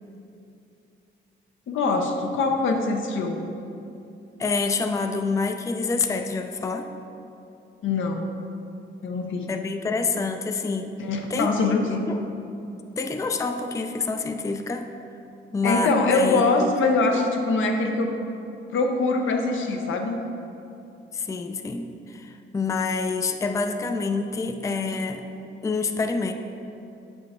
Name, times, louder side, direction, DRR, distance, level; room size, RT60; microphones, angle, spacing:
voice 1, 1.7-3.4 7.8-8.3 9.0-9.5 11.0-12.0 15.6-18.2 18.7-20.2, left 3 dB, 80° left, 3 dB, 0.7 m, -23 dB
voice 2, 4.4-6.9 9.5-10.9 11.3-11.8 12.1-12.2 13.0-14.9 15.5-16.7 21.1-25.2 25.6-26.3, left 4 dB, 15° left, 6 dB, 0.3 m, -27 dB
7.6 x 3.8 x 3.6 m, 2.7 s
cardioid pair, 75°, 20 cm